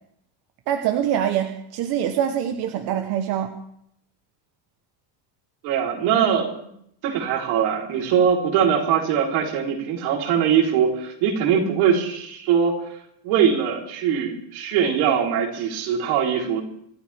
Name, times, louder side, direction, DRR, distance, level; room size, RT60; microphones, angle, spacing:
voice 1, 0.7-3.5, right 10 dB, 50° right, 5 dB, 1.1 m, -24 dB
voice 2, 5.6-6.7 7.0-12.8 13.2-16.6, right 7 dB, 75° right, 0 dB, 3.9 m, -21 dB
26.5 x 13.5 x 3.5 m, 0.72 s
cardioid pair, 180°, 49 cm